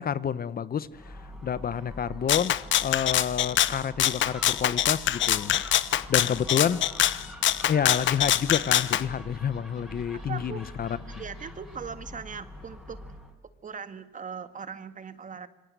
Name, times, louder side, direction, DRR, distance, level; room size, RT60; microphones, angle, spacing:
voice 1, 0.0-2.6 2.8-5.6 6.1-6.9 7.7-11.0, left 8 dB, 50° left, 16 dB, 1.0 m, -29 dB
Gull seagull, 0.9-13.3, left 1 dB, ahead, 6.3 m, -44 dB
Rattle (instrument), 2.3-9.0, left 12 dB, 70° left, 1.0 m, -24 dB
voice 2, 10.1-10.7 11.1-13.0 13.6-15.5, right 6 dB, 40° right, 11 dB, 1.8 m, -39 dB
26.5 x 22.0 x 8.2 m, 1.0 s
cardioid pair, 90°, 20 cm